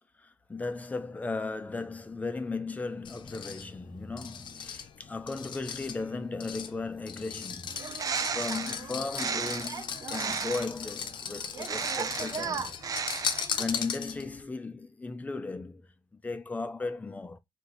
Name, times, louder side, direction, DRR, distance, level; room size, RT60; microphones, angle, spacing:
voice 1, 0.2-12.7 13.3-15.9 16.1-17.4, left 3 dB, 20° left, 0.5 m, -36 dB
sound 1, 3.0-14.4, left 7 dB, 75° left, 0.6 m, -38 dB
Bird, 7.7-10.8 11.5-13.7, right 6 dB, 50° right, 0.4 m, -34 dB
4.4 x 2.7 x 3.8 m
wide cardioid pair, 155°, 8 cm